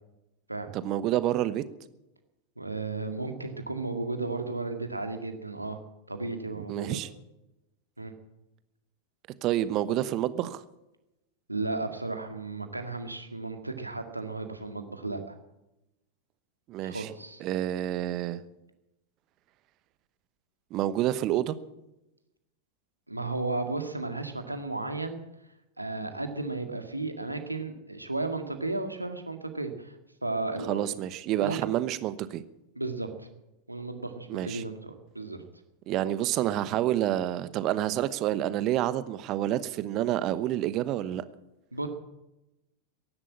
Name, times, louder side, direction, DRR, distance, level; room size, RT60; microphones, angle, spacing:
voice 1, 0.7-1.6 6.7-7.1 9.4-10.6 16.7-17.1 17.4-18.4 20.7-21.6 30.7-32.4 34.3-34.6 35.9-41.2, right 13 dB, 35° right, 15 dB, 1.0 m, -28 dB
voice 2, 2.6-5.8 6.1-7.0 8.0-8.1 11.5-15.3 16.8-17.4 23.1-25.2 25.8-29.9 30.2-31.0 31.4-31.6 32.8-33.3 33.7-35.4 41.7-41.9, right 3 dB, 85° right, 6 dB, 2.0 m, -34 dB
15.0 x 11.0 x 8.5 m, 0.93 s
figure-of-eight pair, 90°, 0 cm